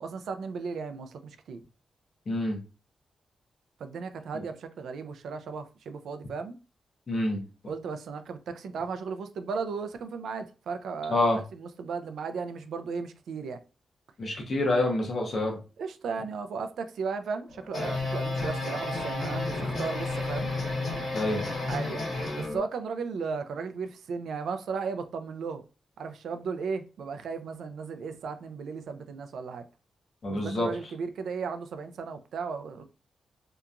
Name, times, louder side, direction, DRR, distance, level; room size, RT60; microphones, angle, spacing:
voice 1, 0.0-1.6 3.8-6.6 7.7-11.3 11.5-13.6 15.8-20.5 21.6-22.0 22.4-25.6 26.0-29.7 30.3-32.8, right 5 dB, 80° right, 0.3 m, -35 dB
voice 2, 2.3-2.6 4.3-4.4 7.1-7.4 11.1-11.4 14.2-15.6 21.1-21.4 30.2-30.7, left 1 dB, 35° left, 0.7 m, -27 dB
sound 1, 17.5-22.6, left 2 dB, 50° left, 1.2 m, -31 dB
2.8 x 2.3 x 2.3 m
wide cardioid pair, 180°, 0 cm